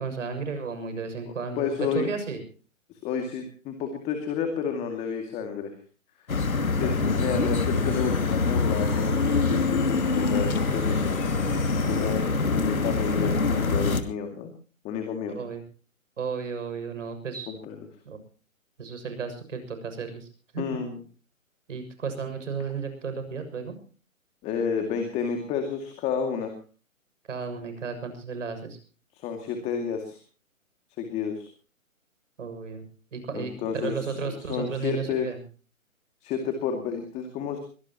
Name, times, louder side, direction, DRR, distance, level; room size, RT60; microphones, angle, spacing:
voice 1, 0.0-2.4 12.0-12.5 15.4-15.6 16.2-17.5 18.1-18.2 18.8-20.3 20.5-20.8 21.7-23.8 27.3-28.8 32.4-32.9 33.1-35.4, right 5 dB, 60° right, 8 dB, 7.0 m, -34 dB
voice 2, 1.2-2.1 2.9-5.8 6.6-11.1 11.7-14.5 14.8-15.4 17.5-17.8 20.6-21.0 24.4-26.5 29.1-30.2 31.0-31.5 33.3-34.1 34.5-35.3 36.2-37.6, left 6 dB, 15° left, 5 dB, 2.4 m, -31 dB
sound 1, 6.3-14.0, left 4 dB, 85° left, 2.6 m, -25 dB
sound 2, 7.6-12.3, left 8 dB, 30° left, 4.7 m, -47 dB
23.0 x 19.5 x 3.0 m, 0.38 s
hypercardioid pair, 150°, 41 cm